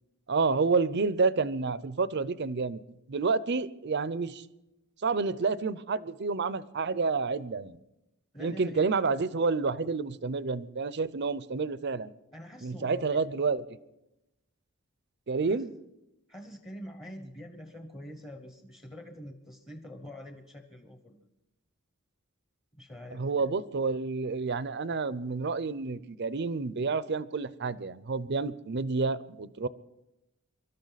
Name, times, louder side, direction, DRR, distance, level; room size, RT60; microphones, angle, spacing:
voice 1, 0.3-2.8 3.1-4.4 5.0-7.8 8.4-12.1 12.6-13.6 15.3-15.7 23.1-29.7, right 4 dB, 50° right, 17 dB, 0.6 m, -29 dB
voice 2, 8.3-8.9 12.3-13.2 15.4-15.6 16.3-21.2 22.7-23.5, equal, 20° left, 5 dB, 1.1 m, -45 dB
24.5 x 12.5 x 4.1 m, 0.90 s
head